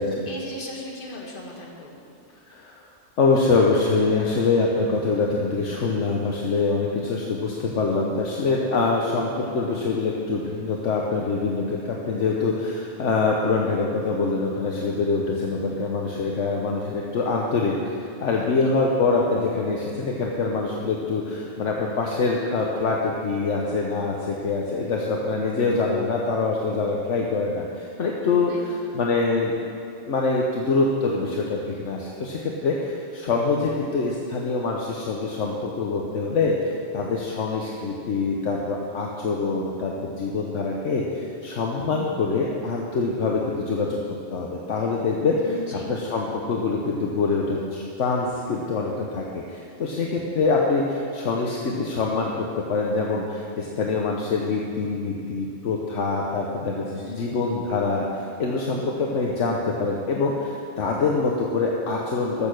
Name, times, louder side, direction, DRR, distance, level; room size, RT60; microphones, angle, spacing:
voice 1, 0.3-2.1 18.3-18.7 28.5-28.9 45.4-45.9 56.9-57.3, left 2 dB, 45° left, -2 dB, 1.8 m, -38 dB
voice 2, 2.5-2.8 3.2-29.5 30.0-44.0 44.3-62.5, left 3 dB, 70° left, -1 dB, 1.2 m, -25 dB
14.5 x 6.6 x 6.4 m, 2.5 s
omnidirectional pair, 1.3 m